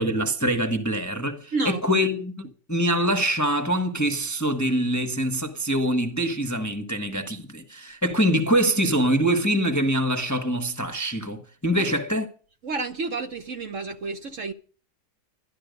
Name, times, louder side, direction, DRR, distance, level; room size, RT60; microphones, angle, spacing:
voice 1, 0.0-12.3, right 1 dB, 15° left, 0.9 m, -24 dB
voice 2, 1.5-1.8 11.8-11.9 12.6-14.5, right 3 dB, 55° right, 1.2 m, -30 dB
12.5 x 12.0 x 5.2 m
omnidirectional pair, 1.8 m